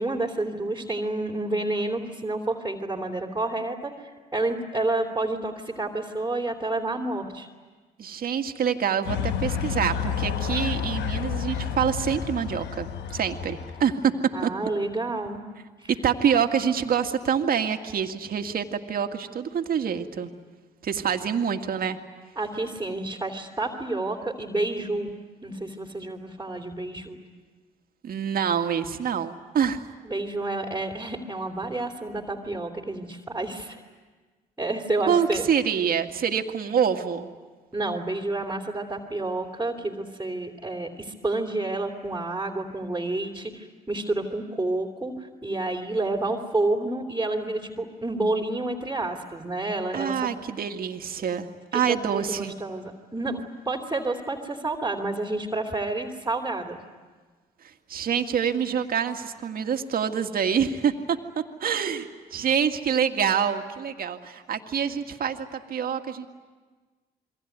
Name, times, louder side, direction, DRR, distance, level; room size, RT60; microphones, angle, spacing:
voice 1, 0.0-3.9 4.3-7.5 14.3-15.4 15.8-15.9 22.4-25.1 25.4-27.2 30.0-33.8 34.6-35.4 37.7-50.1 51.7-56.8, right 2 dB, 10° right, 0 dB, 3.2 m, -29 dB
voice 2, 8.0-14.1 14.4-14.5 15.9-20.3 20.8-22.0 28.0-29.8 35.1-37.3 49.9-52.5 57.9-66.3, right 7 dB, 55° right, 6 dB, 2.0 m, -26 dB
sound 1, 9.1-13.9, left 7 dB, 75° left, 1.1 m, -30 dB
28.0 x 22.0 x 9.5 m, 1.4 s
supercardioid pair, 60°, 18 cm